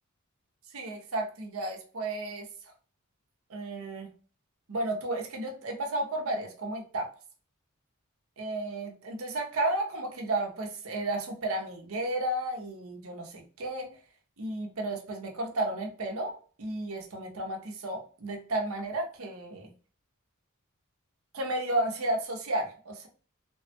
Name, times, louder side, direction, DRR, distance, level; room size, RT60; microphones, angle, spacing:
voice 1, 0.7-2.5 3.5-4.1 4.7-7.1 8.4-13.9 14.4-19.7 21.3-23.1, right 1 dB, 75° right, 2 dB, 0.7 m, -33 dB
3.3 x 2.2 x 2.7 m, 0.40 s
head